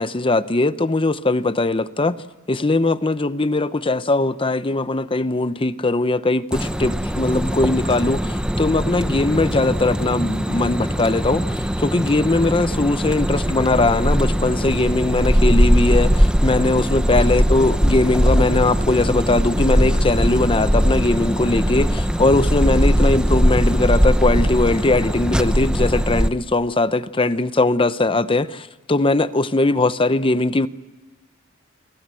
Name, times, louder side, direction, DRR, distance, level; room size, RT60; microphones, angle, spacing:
voice 1, 0.0-2.2 2.5-30.7, left 2 dB, 25° left, 0.8 m, -20 dB
sound 1, 6.5-26.3, equal, 5° right, 0.8 m, -20 dB
29.5 x 23.5 x 7.7 m
head